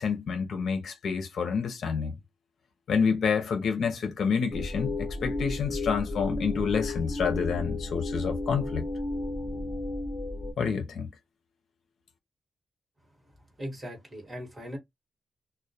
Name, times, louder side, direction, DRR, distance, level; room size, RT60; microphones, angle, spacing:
voice 1, 0.0-2.1 2.9-8.8 10.6-11.1, left 6 dB, 70° left, 0.6 m, -28 dB
sound 1, 4.5-10.5, left 2 dB, 20° left, 0.7 m, -33 dB
voice 2, 13.6-14.8, equal, 25° right, 1.1 m, -39 dB
2.1 x 2.1 x 2.7 m
wide cardioid pair, 160°, 0 cm